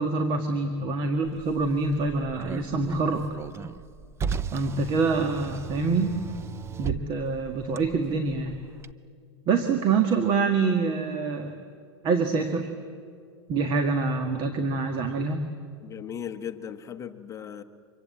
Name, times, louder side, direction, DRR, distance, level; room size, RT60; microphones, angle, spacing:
voice 1, 0.0-3.3 4.5-6.2 6.8-8.6 9.5-11.5 12.0-12.7 13.5-15.4, right 4 dB, 35° right, 6 dB, 1.7 m, -26 dB
Car, 1.2-8.9, right 6 dB, 20° right, 0.6 m, -36 dB
voice 2, 15.8-17.6, left 8 dB, 20° left, 6 dB, 1.2 m, -37 dB
25.5 x 23.0 x 8.3 m, 2.2 s
hypercardioid pair, 130°, 15 cm